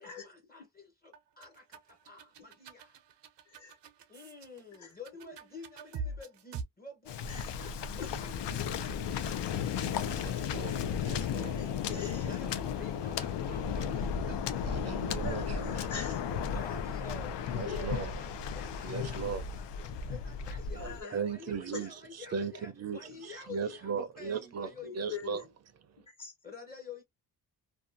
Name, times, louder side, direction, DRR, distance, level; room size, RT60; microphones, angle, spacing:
voice 1, 0.0-3.0 4.1-10.5 12.2-15.0 15.6-15.8 16.5-25.4 26.4-27.0, left 4 dB, 25° left, 0.6 m, -50 dB
sound 1, 1.1-6.6, right 4 dB, 85° right, 0.6 m, -43 dB
voice 2, 3.5-3.8 4.8-4.9 7.3-7.7 8.0-8.2 10.0-10.2 11.6-12.3 15.2-16.3 17.6-17.9 18.9-19.3 20.8-21.2 21.7-21.9 24.8-25.5 26.0-26.3, left 5 dB, 45° left, 1.1 m, -43 dB
Waves surf, 7.1-21.0, left 7 dB, 90° left, 0.6 m, -34 dB
voice 3, 10.0-11.6 11.8-12.3 14.7-15.9 17.5-18.1 18.8-19.4 21.1-25.4, right 6 dB, 40° right, 0.4 m, -38 dB
2.6 x 2.3 x 2.5 m
wide cardioid pair, 180°, 41 cm